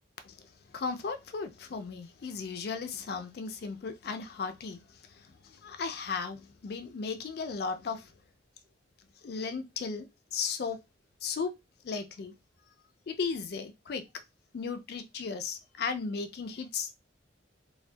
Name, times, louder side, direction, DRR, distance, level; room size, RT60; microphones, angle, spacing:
voice 1, 0.7-4.8 5.1-8.1 9.2-10.1 10.3-10.8 11.2-11.5 11.8-12.3 13.1-14.0 14.5-16.9, left 5 dB, 55° left, 0.4 m, -35 dB
2.2 x 2.2 x 2.6 m
head